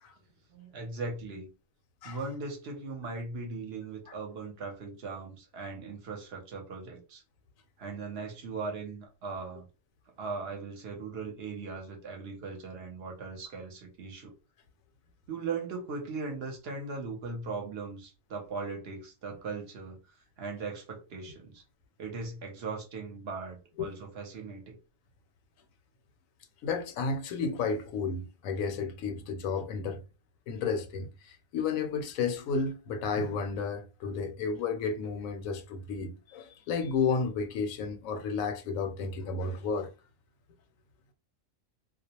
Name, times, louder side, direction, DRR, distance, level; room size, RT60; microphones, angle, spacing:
voice 1, 0.5-1.5 2.0-7.2 7.8-9.7 10.2-14.3 15.3-20.0 20.4-21.6 22.0-24.8, right 4 dB, 55° right, 0.9 m, -39 dB
voice 2, 26.6-30.0 30.5-39.9, left 5 dB, 80° left, 1.0 m, -32 dB
2.4 x 2.0 x 2.8 m
omnidirectional pair, 1.4 m